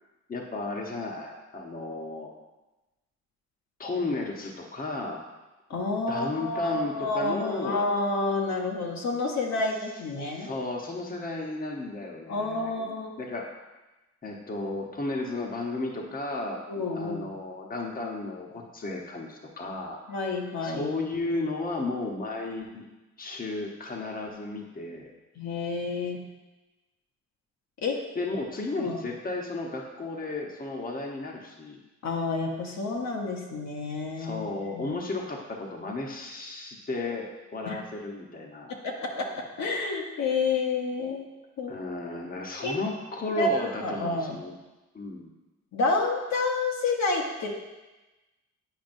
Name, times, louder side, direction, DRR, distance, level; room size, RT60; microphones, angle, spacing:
voice 1, 0.3-2.3 3.8-5.2 6.1-7.8 10.2-13.4 14.2-16.6 16.9-20.0 20.6-22.9 23.2-25.1 28.1-31.8 34.2-38.7 41.7-44.6 44.9-45.3, left 2 dB, 30° left, 0 dB, 1.0 m, -34 dB
voice 2, 5.7-10.5 12.3-13.1 16.7-17.2 20.1-20.9 25.4-26.2 27.8-27.9 28.8-29.0 32.0-35.0 37.7-37.8 38.7-39.2 39.6-41.3 41.6-41.7 42.6-42.7 43.4-44.4 45.7-47.5, left 3 dB, 65° left, 0 dB, 1.0 m, -29 dB
8.9 x 5.1 x 2.6 m, 1.1 s
cardioid pair, 90°, 30 cm